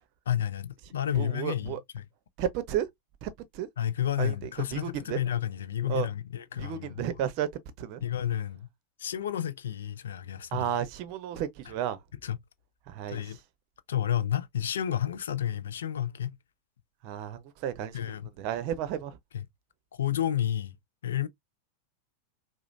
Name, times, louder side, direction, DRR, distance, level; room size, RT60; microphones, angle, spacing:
voice 1, 0.3-2.1 3.8-7.0 8.0-8.7 9.0-10.7 12.2-12.4 13.1-13.4 13.9-16.4 17.9-18.3 19.3-19.5 19.9-20.7 21.0-21.3, left 10 dB, 65° left, 0.4 m, -31 dB
voice 2, 1.1-1.8 2.4-2.9 3.2-3.7 4.2-5.2 5.9-6.1 6.6-7.5 7.8-8.0 10.5-12.0 12.9-13.2 17.0-19.2, right 10 dB, 45° right, 0.6 m, -33 dB
4.9 x 2.0 x 2.5 m
figure-of-eight pair, 90°, 0 cm